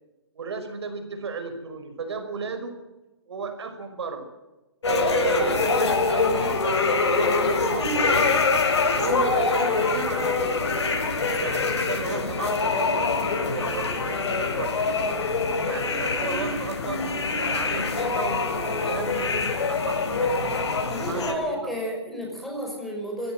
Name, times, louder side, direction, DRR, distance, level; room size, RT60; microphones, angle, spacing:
voice 1, 0.4-2.8 3.3-4.3 4.8-8.4 8.9-10.8 11.4-15.0 15.6-20.5 21.1-21.7, right 4 dB, 75° right, 8 dB, 5.4 m, -34 dB
sound 1, 4.8-21.3, left 3 dB, 85° left, 6.7 m, -24 dB
voice 2, 20.9-23.3, equal, ahead, -1 dB, 5.6 m, -31 dB
23.5 x 16.0 x 7.9 m, 1.1 s
hypercardioid pair, 160°, 14 cm